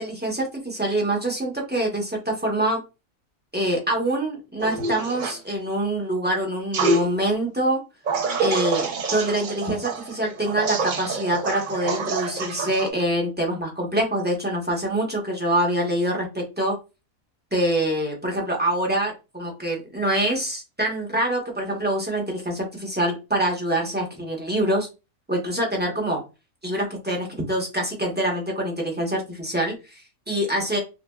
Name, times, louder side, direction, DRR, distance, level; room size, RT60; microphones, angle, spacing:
voice 1, 0.0-2.8 3.5-7.8 8.4-16.8 17.5-24.9 25.3-26.2 26.6-30.8, right 1 dB, 10° right, -1 dB, 0.6 m, -25 dB
sound 1, 4.6-5.4 6.7-7.0 8.1-12.9, right 3 dB, 60° right, 0.5 m, -26 dB
5.6 x 2.0 x 2.2 m, 0.28 s
omnidirectional pair, 1.4 m